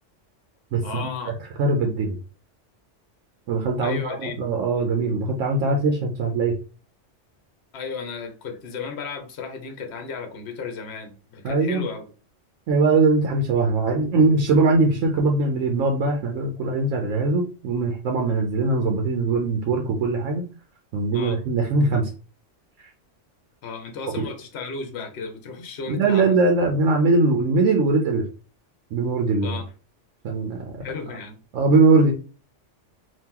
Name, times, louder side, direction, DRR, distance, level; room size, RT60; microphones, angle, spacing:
voice 1, 0.8-1.3 3.8-4.3 7.7-12.0 21.1-21.4 23.6-26.3 29.4-29.7 30.8-31.4, left 5 dB, 65° left, 1.0 m, -34 dB
voice 2, 1.6-2.2 3.5-6.6 11.4-11.8 12.7-20.4 20.9-22.1 24.1-24.2 25.9-28.2 28.9-29.6 30.2-30.8 31.5-32.1, right 3 dB, 85° right, 1.0 m, -21 dB
2.9 x 2.7 x 3.6 m
omnidirectional pair, 1.3 m